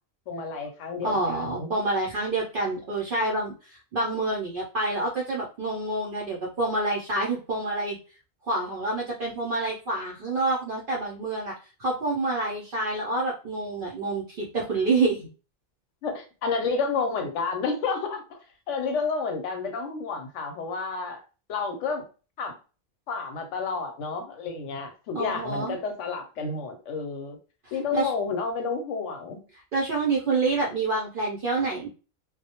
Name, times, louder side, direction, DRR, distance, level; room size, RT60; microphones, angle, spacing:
voice 1, 0.3-1.7 16.0-18.4 18.7-21.2 21.5-22.0 22.4-22.5 23.1-27.4 27.7-29.4, left 4 dB, 70° left, 6 dB, 0.8 m, -30 dB
voice 2, 1.0-8.0 8.5-11.5 11.8-15.3 25.1-25.8 27.6-28.1 29.7-31.9, right 3 dB, 60° right, -3 dB, 0.5 m, -27 dB
2.2 x 2.0 x 2.8 m, 0.35 s
omnidirectional pair, 1.4 m